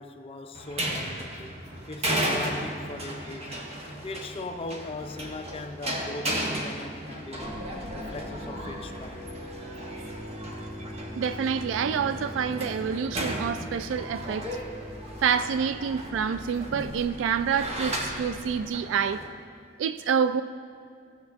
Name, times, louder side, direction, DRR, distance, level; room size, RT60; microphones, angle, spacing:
voice 1, 0.0-7.6 7.9-9.2, left 2 dB, 30° left, 0.5 m, -40 dB
sound 1, 0.5-19.3, right 1 dB, 35° right, 1.2 m, -35 dB
sound 2, 7.4-18.7, left 1 dB, ahead, 1.7 m, -42 dB
voice 2, 10.9-14.6 15.2-19.3 19.8-20.4, right 7 dB, 85° right, 0.3 m, -27 dB
15.0 x 7.3 x 3.5 m
head